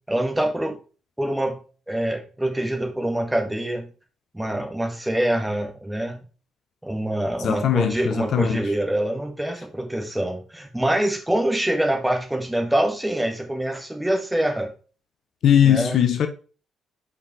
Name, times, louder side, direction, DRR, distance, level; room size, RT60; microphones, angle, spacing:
voice 1, 0.1-0.8 1.2-1.6 1.9-3.9 4.3-6.2 6.8-14.7 15.6-16.0, right 1 dB, 10° right, 1.8 m, -25 dB
voice 2, 7.4-8.6 15.4-16.3, left 9 dB, 55° left, 0.7 m, -19 dB
5.6 x 5.1 x 4.8 m
figure-of-eight pair, 40°, 0 cm